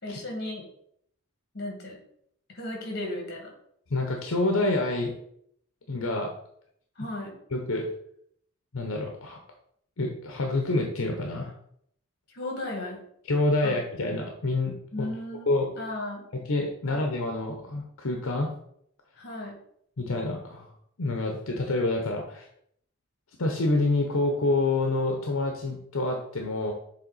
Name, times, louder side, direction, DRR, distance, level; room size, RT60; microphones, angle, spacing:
voice 1, 0.0-0.6 1.5-2.0 2.5-3.5 7.0-7.3 12.3-13.0 13.6-13.8 14.9-16.3 16.9-17.0 19.2-19.6, left 1 dB, 50° left, 1 dB, 2.0 m, -35 dB
voice 2, 3.9-5.1 5.9-6.3 7.5-7.9 8.7-9.4 10.0-11.5 13.3-15.1 15.5-15.7 16.3-18.5 20.0-20.7 21.0-22.5 23.4-26.7, left 2 dB, 75° left, 2 dB, 0.8 m, -27 dB
7.3 x 3.4 x 4.0 m, 0.69 s
head